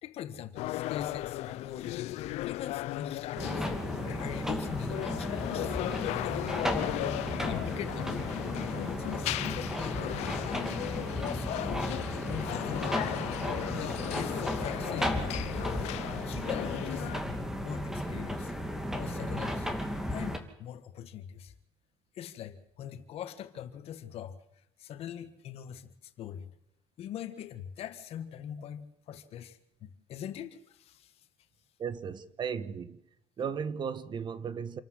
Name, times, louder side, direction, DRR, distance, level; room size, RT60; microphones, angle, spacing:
voice 1, 0.0-6.6 7.4-10.8 11.2-11.8 12.3-13.1 13.7-15.3 16.2-18.5 18.9-19.7 20.1-21.5 22.1-24.3 24.8-26.5 27.0-31.1, left 10 dB, 65° left, 1.8 m, -42 dB
sound 1, 0.6-17.2, left 16 dB, 85° left, 0.7 m, -36 dB
sound 2, 3.4-20.4, equal, 5° right, 2.7 m, -34 dB
voice 2, 31.8-33.0 33.4-34.8, right 7 dB, 45° right, 1.3 m, -35 dB
27.5 x 13.0 x 7.9 m
cardioid pair, 115°, 11 cm